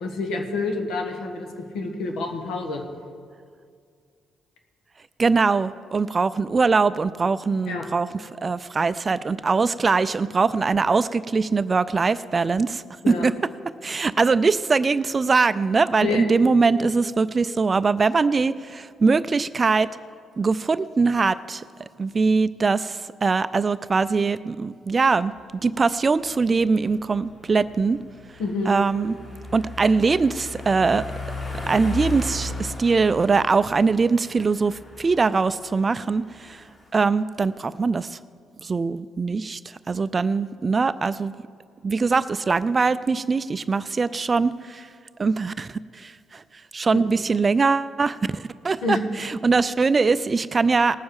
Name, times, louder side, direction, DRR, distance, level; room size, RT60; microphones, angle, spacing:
voice 1, 0.0-2.8 7.7-7.8 13.0-13.3 16.0-16.3 28.4-28.7 46.9-47.0 48.8-49.0, left 3 dB, 85° left, 3 dB, 1.5 m, -28 dB
voice 2, 5.2-8.1 8.4-13.3 13.8-19.9 20.4-21.6 22.0-25.3 25.6-28.0 28.7-29.2 29.5-31.1 31.7-36.6 36.9-38.2 38.6-41.3 41.8-44.9 45.2-46.4 46.7-51.0, right 4 dB, 30° right, 15 dB, 0.3 m, -22 dB
sound 1, 25.2-36.9, left 2 dB, 40° left, 3.3 m, -37 dB
19.0 x 7.3 x 4.8 m, 2.1 s
cardioid pair, 90°, 0 cm